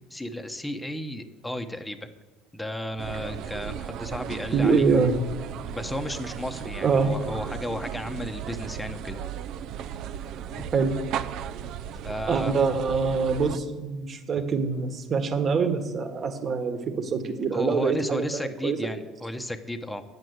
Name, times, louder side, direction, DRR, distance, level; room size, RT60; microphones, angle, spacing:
voice 1, 0.1-2.1 2.5-4.9 5.7-9.2 12.0-12.5 17.5-20.0, left 1 dB, 5° left, 6 dB, 0.9 m, -33 dB
sound 1, 3.0-13.6, right 9 dB, 60° right, 0.5 m, -36 dB
voice 2, 4.5-5.2 6.8-7.1 10.7-10.9 12.3-18.8, right 5 dB, 40° right, 7 dB, 1.4 m, -24 dB
9.6 x 7.8 x 7.9 m, 1.2 s
supercardioid pair, 110°, 0 cm